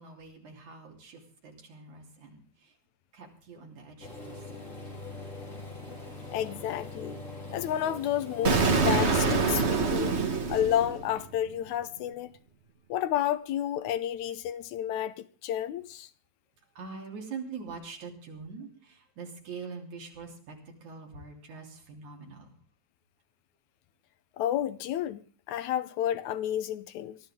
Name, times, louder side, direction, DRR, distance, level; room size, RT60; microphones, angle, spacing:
voice 1, 0.0-2.7 3.1-4.6 16.7-22.5, right 5 dB, 80° right, 4.8 m, -44 dB
sound 1, 4.0-9.5, left 2 dB, 25° left, 4.9 m, -42 dB
voice 2, 6.3-7.2 7.5-10.2 10.5-12.3 12.9-16.1 24.4-27.2, left 11 dB, 80° left, 2.2 m, -31 dB
Explosion, 8.4-11.4, right 4 dB, 40° right, 0.9 m, -25 dB
23.0 x 14.0 x 3.7 m
omnidirectional pair, 3.3 m